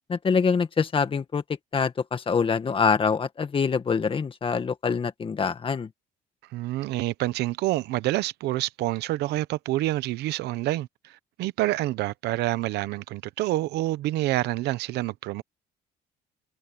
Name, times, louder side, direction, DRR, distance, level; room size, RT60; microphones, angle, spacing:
voice 1, 0.1-1.4 1.7-5.9, left 5 dB, 30° left, 1.8 m, -25 dB
voice 2, 6.5-15.4, right 16 dB, 85° right, 0.9 m, -27 dB
cardioid pair, 110°, 17 cm